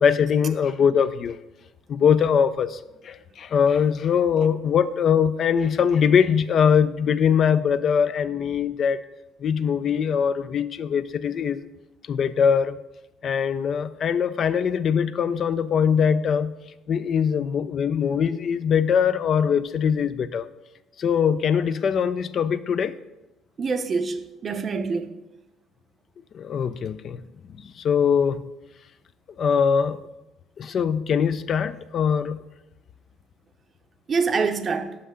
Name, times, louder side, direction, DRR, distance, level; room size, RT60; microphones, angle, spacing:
voice 1, 0.0-1.4 1.9-2.8 3.0-9.0 9.4-11.6 12.1-12.8 13.2-16.5 16.9-20.5 21.0-22.9 26.3-27.2 27.8-28.4 29.4-30.0 30.6-32.4, left 7 dB, 50° left, 0.3 m, -22 dB
voice 2, 23.6-25.1 34.1-35.0, right 4 dB, 35° right, 0.6 m, -25 dB
5.7 x 5.6 x 6.2 m
cardioid pair, 105°, 0 cm